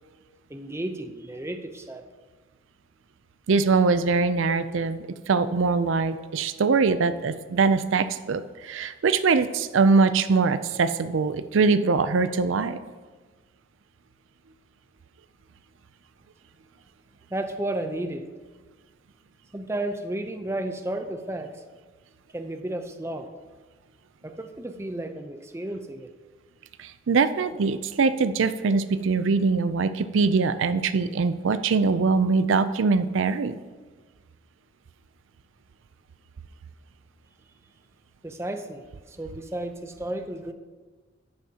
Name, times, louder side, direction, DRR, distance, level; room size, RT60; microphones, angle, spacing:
voice 1, 0.5-2.0 17.3-18.3 19.5-21.6 22.3-23.3 24.2-26.1 38.2-40.5, right 1 dB, 15° right, 6 dB, 0.6 m, -33 dB
voice 2, 3.5-12.8 26.8-33.6, right 4 dB, 75° right, 12 dB, 0.5 m, -22 dB
12.5 x 9.7 x 2.9 m, 1.3 s
head